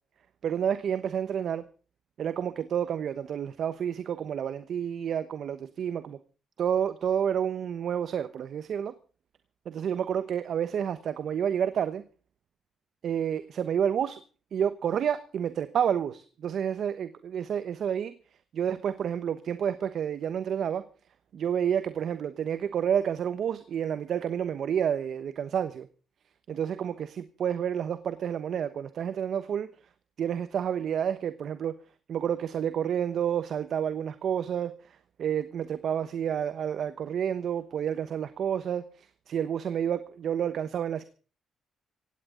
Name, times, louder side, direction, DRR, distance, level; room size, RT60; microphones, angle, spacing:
voice 1, 0.4-1.6 2.2-6.2 6.6-8.9 9.6-12.0 13.0-14.2 14.5-18.1 18.5-20.8 21.3-25.9 26.5-29.7 30.2-31.8 32.1-41.0, right 8 dB, 65° right, 12 dB, 1.1 m, -29 dB
17.0 x 17.0 x 3.9 m, 0.38 s
cardioid pair, 85°, 0 cm